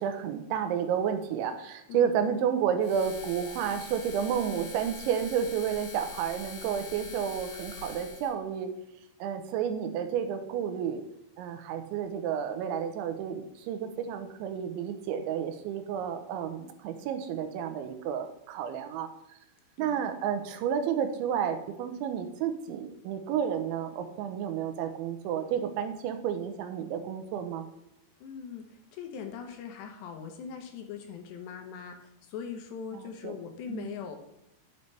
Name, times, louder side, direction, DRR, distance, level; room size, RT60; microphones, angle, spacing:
voice 1, 0.0-8.7 9.2-11.0 11.4-19.1 19.8-27.7 32.9-33.3 33.7-33.9, right 8 dB, 85° right, 7 dB, 3.2 m, -31 dB
sound 1, 2.8-8.3, left 4 dB, 55° left, 1.9 m, -44 dB
voice 2, 19.8-20.1 28.2-34.2, left 7 dB, 75° left, 4 dB, 3.1 m, -41 dB
9.9 x 9.5 x 3.4 m, 0.83 s
omnidirectional pair, 5.3 m